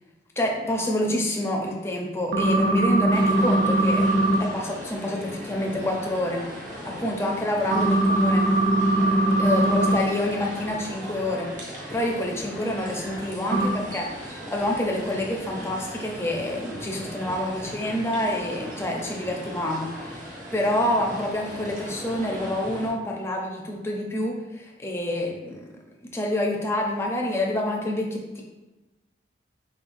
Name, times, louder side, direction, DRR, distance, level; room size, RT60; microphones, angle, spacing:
voice 1, 0.4-4.1 4.4-6.4 6.8-8.5 9.4-11.5 11.9-25.7 26.1-28.4, left 1 dB, 15° left, -1 dB, 0.5 m, -27 dB
sound 1, 2.3-4.4 7.7-10.0 13.5-13.7, right 1 dB, 70° right, 0.6 m, -20 dB
sound 2, 3.1-22.9, equal, 45° right, 1.0 m, -38 dB
3.8 x 3.8 x 2.5 m, 1.1 s
head